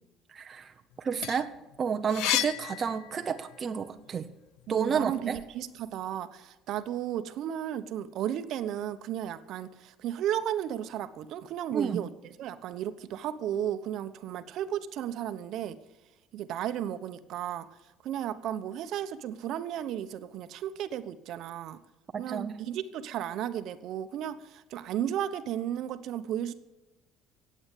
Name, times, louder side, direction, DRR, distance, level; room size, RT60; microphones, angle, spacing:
voice 1, 0.3-1.5 1.8-4.3 4.7-5.4 11.7-12.0 22.1-22.6, right 6 dB, 30° right, 6 dB, 0.8 m, -31 dB
sound 1, 0.9-3.6 4.1-5.5, left 14 dB, 80° left, 0.6 m, -33 dB
voice 2, 4.7-15.8 16.3-17.7 18.0-21.8 22.2-26.5, right 10 dB, 60° right, 11 dB, 1.0 m, -34 dB
15.5 x 8.7 x 8.4 m, 1.0 s
cardioid pair, 145°, 0 cm